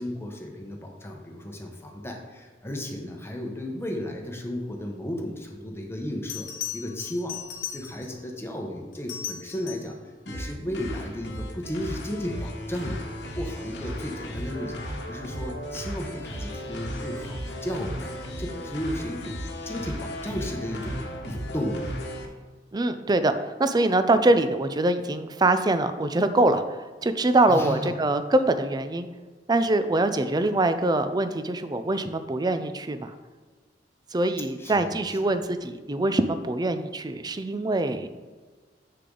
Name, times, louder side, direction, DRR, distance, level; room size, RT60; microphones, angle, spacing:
voice 1, 0.0-7.4 7.7-10.0 10.3-13.0 13.3-19.4 19.7-21.9 27.5-27.9 34.6-34.9 35.2-35.3, left 1 dB, 15° left, 1 dB, 1.0 m, -34 dB
Bell, 6.3-8.2 8.9-10.0 12.7-12.9, left 9 dB, 50° left, 1.0 m, -37 dB
sound 1, 10.3-22.3, equal, 80° left, 1.3 m, -35 dB
voice 2, 22.7-26.6 27.0-29.1 29.5-33.1 34.1-38.1, right 2 dB, 25° right, 10 dB, 0.5 m, -24 dB
7.7 x 6.6 x 3.8 m, 1.4 s
head